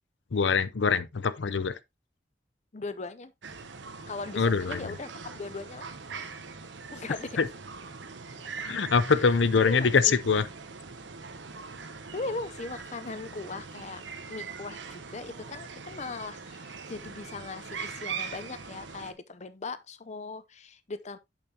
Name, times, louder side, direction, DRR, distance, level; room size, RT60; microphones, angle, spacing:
voice 1, 0.3-1.8 4.4-4.9 7.4-7.5 8.7-10.4, left 5 dB, 80° left, 0.6 m, -24 dB
voice 2, 2.7-3.3 4.1-5.9 6.9-7.3 9.7-10.1 12.1-14.0 14.3-21.2, left 3 dB, 40° left, 0.6 m, -39 dB
sound 1, 3.4-19.1, right 5 dB, 90° right, 1.1 m, -42 dB
8.3 x 7.0 x 2.8 m
head